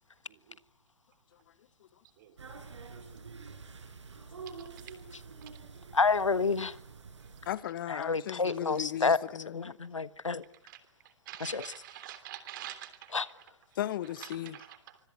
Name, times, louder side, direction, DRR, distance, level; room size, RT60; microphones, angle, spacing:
voice 1, 2.2-2.6 4.6-4.8 5.4-5.5 10.7-13.2 14.2-15.0, right 12 dB, 40° right, 3.4 m, -47 dB
sound 1, 2.4-7.6, right 5 dB, 70° right, 5.3 m, -47 dB
voice 2, 5.9-6.8 7.9-9.2 9.5-10.4 11.4-11.7 13.1-13.3, left 4 dB, 80° left, 1.4 m, -29 dB
voice 3, 7.5-9.8 13.8-14.6, left 12 dB, 45° left, 1.1 m, -36 dB
25.5 x 23.5 x 8.1 m
figure-of-eight pair, 120°, 16 cm